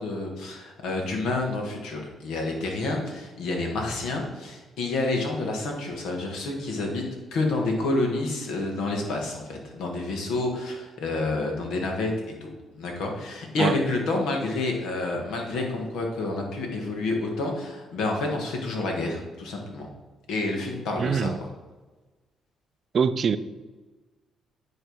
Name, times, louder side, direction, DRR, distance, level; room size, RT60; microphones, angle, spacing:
voice 1, 0.0-7.0 7.3-12.1 12.4-12.5 12.7-19.9 20.3-21.3, left 2 dB, 85° left, 1 dB, 1.5 m, -29 dB
voice 2, 21.0-21.4 22.9-23.4, right 6 dB, 50° right, 13 dB, 0.4 m, -23 dB
9.6 x 3.3 x 4.7 m, 1.2 s
cardioid pair, 90°, 0 cm